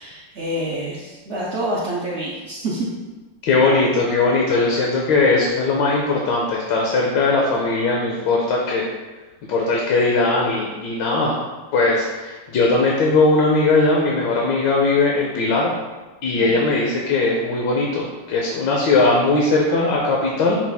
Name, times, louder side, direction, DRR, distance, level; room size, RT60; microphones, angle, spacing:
voice 1, 0.0-2.9 16.4-16.5, right 1 dB, 75° right, -7 dB, 0.6 m, -27 dB
voice 2, 3.5-8.9 9.5-11.3 11.7-15.7 16.2-20.6, left 3 dB, 80° left, -2 dB, 1.3 m, -19 dB
5.8 x 2.3 x 3.4 m, 1.2 s
omnidirectional pair, 2.0 m